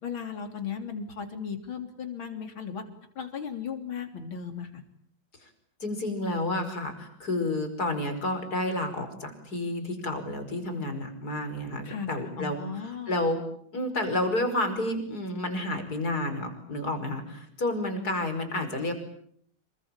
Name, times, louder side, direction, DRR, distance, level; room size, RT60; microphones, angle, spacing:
voice 1, 0.0-2.8 3.2-4.7 11.9-13.1, left 6 dB, 85° left, 6 dB, 4.0 m, -36 dB
voice 2, 5.8-12.6 13.1-13.4 13.7-18.9, left 1 dB, 50° left, 7 dB, 5.7 m, -30 dB
28.0 x 23.5 x 8.8 m, 0.67 s
omnidirectional pair, 2.2 m